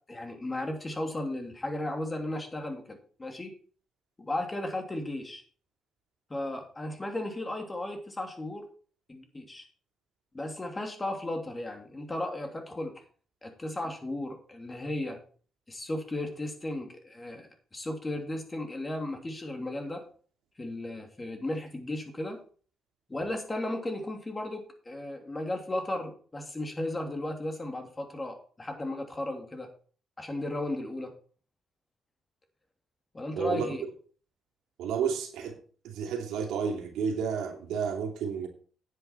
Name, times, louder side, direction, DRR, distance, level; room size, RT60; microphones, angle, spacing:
voice 1, 0.1-3.5 4.2-5.4 6.3-8.6 9.1-9.7 10.3-12.9 13.4-15.2 15.7-20.0 20.6-22.4 23.1-29.7 30.2-31.1 33.1-33.8, left 1 dB, 20° left, 2.9 m, -35 dB
voice 2, 33.4-33.7 34.8-35.6 35.8-38.5, right 6 dB, 90° right, 2.6 m, -31 dB
9.9 x 8.4 x 4.5 m
cardioid pair, 90°, 0 cm